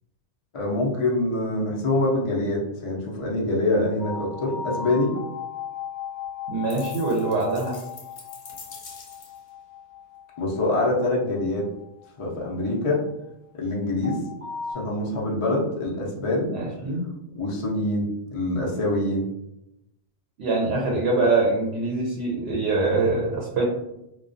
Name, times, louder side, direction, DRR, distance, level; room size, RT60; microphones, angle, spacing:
voice 1, 0.5-5.1 10.4-11.7 12.2-13.0 13.5-14.2 14.7-16.5 17.3-19.2, left 2 dB, 50° left, -3 dB, 0.4 m, -25 dB
sound 1, 4.0-13.1 14.0-14.7, left 7 dB, 35° right, 0.9 m, -37 dB
voice 2, 6.5-7.8 16.5-17.0 20.4-23.6, right 3 dB, 70° right, -3 dB, 0.8 m, -24 dB
sound 2, 6.7-9.5, left 4 dB, 70° left, 0.8 m, -45 dB
2.3 x 2.2 x 2.5 m, 0.85 s
omnidirectional pair, 1.1 m